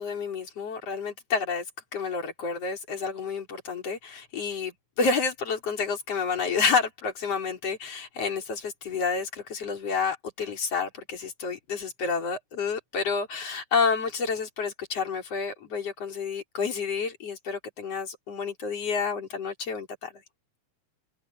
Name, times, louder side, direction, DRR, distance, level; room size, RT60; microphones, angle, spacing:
voice 1, 0.0-1.6 1.9-20.1, left 5 dB, 50° left, 5.5 m, -29 dB
omnidirectional pair, 3.6 m